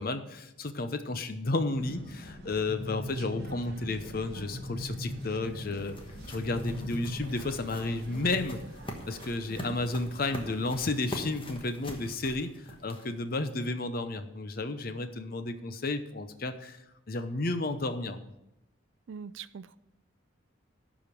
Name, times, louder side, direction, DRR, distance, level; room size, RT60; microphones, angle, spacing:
voice 1, 0.0-6.0 6.3-8.6 9.1-18.2, left 2 dB, 45° left, 9 dB, 0.7 m, -32 dB
sound 1, 1.7-10.9, right 2 dB, 50° right, 1.1 m, -51 dB
sound 2, 1.8-8.4, equal, 10° left, 2.0 m, -41 dB
sound 3, 4.7-13.3, left 1 dB, 25° left, 1.1 m, -44 dB
voice 2, 9.5-9.8 19.1-19.8, right 6 dB, 65° right, 16 dB, 0.4 m, -43 dB
12.0 x 5.0 x 5.9 m, 0.87 s
head